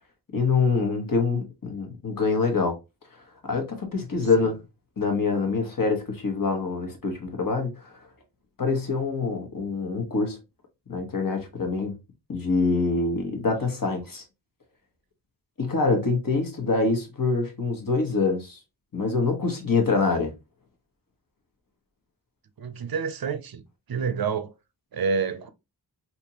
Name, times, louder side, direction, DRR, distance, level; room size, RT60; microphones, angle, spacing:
voice 1, 0.3-2.7 3.5-4.6 5.0-7.9 8.6-10.4 10.9-11.9 12.3-14.2 15.6-18.6 18.9-20.3, left 4 dB, 50° left, 1.2 m, -25 dB
voice 2, 22.6-23.6 23.9-24.5 24.9-25.5, right 5 dB, 55° right, 0.6 m, -28 dB
3.5 x 2.8 x 2.8 m
wide cardioid pair, 65°, 43 cm